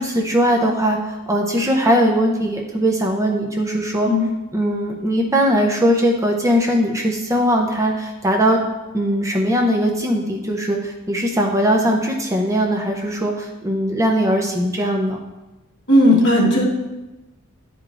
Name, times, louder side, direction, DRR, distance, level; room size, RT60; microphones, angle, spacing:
voice 1, 0.0-4.1 4.5-8.6 8.9-15.2, equal, 15° right, 1 dB, 0.5 m, -20 dB
voice 2, 15.9-16.6, left 1 dB, 50° left, -2 dB, 1.2 m, -14 dB
10.0 x 4.8 x 2.4 m, 1.1 s
head